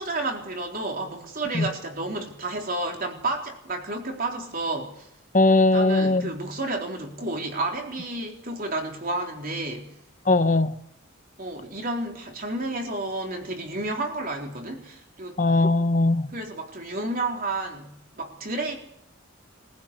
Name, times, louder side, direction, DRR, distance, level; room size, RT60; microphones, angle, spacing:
voice 1, 0.0-5.1 5.7-9.9 11.4-15.4 16.3-18.8, right 2 dB, 45° right, 3.9 m, -31 dB
voice 2, 5.3-6.3 10.3-10.8 15.4-16.3, left 2 dB, 40° left, 1.1 m, -20 dB
23.0 x 15.5 x 8.4 m
head